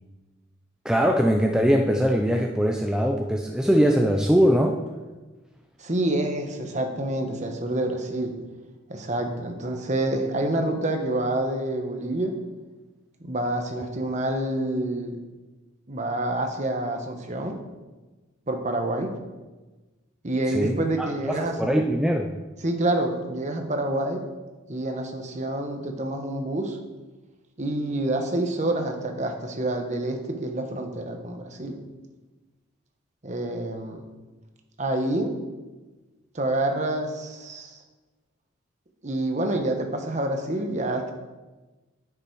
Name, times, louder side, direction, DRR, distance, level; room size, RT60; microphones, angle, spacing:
voice 1, 0.8-4.8 20.5-22.3, equal, 5° right, 2 dB, 0.4 m, -22 dB
voice 2, 5.8-8.4 8.9-12.3 13.2-15.2 15.9-17.6 18.5-19.1 20.2-21.7 22.6-24.2 24.7-26.8 27.6-31.8 33.2-34.0 34.8-35.3 36.3-37.8 39.0-41.1, right 1 dB, 35° right, 4 dB, 1.0 m, -27 dB
9.8 x 7.0 x 4.6 m, 1.2 s
head